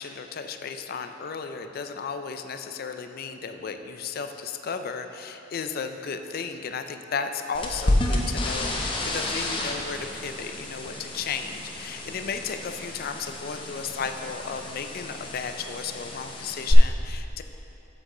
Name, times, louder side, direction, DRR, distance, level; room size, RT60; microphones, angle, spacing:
voice 1, 0.0-17.4, left 5 dB, 50° left, 7 dB, 0.4 m, -34 dB
sound 1, 7.5-16.7, left 1 dB, 25° left, 0.7 m, -31 dB
7.8 x 7.5 x 3.8 m, 2.9 s
head